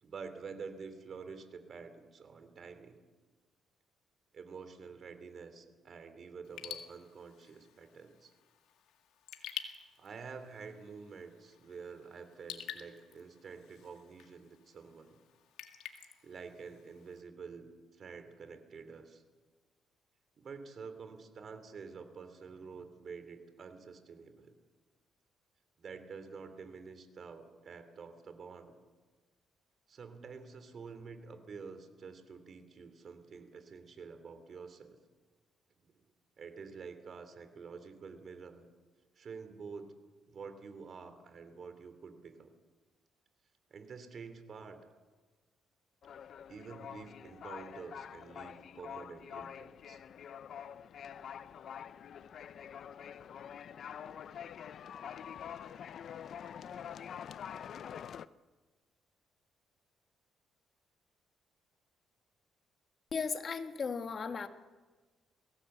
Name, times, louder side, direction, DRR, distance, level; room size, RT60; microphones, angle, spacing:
voice 1, 0.0-3.0 4.3-8.3 10.0-15.2 16.2-17.7 18.0-19.2 20.4-24.6 25.8-28.8 29.9-35.0 35.8-35.9 36.4-38.6 39.2-40.0 40.3-42.5 43.7-44.8 46.5-50.0, right 5 dB, 50° right, 9 dB, 3.0 m, -48 dB
Raindrop / Drip, 6.4-17.2, left 10 dB, 90° left, 1.9 m, -50 dB
sound 1, 46.0-58.3, left 8 dB, 60° left, 0.6 m, -46 dB
voice 2, 63.1-64.5, left 5 dB, 45° left, 7 dB, 1.6 m, -36 dB
22.0 x 17.5 x 8.0 m, 1.3 s
cardioid pair, 90°, 0 cm